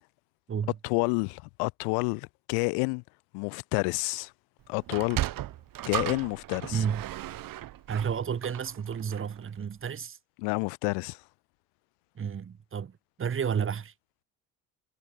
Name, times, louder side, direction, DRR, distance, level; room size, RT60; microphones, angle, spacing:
voice 1, 0.8-3.0 3.3-4.3 4.7-5.2 5.9-6.8 10.4-11.2, left 36 dB, 55° left, 0.5 m, -29 dB
Sliding door, 4.8-9.4, right 14 dB, 45° right, 1.5 m, -35 dB
voice 2, 6.7-7.0 7.9-10.2 12.2-12.9 13.2-13.9, right 7 dB, 25° right, 1.7 m, -31 dB
hypercardioid pair, 75°, 45 cm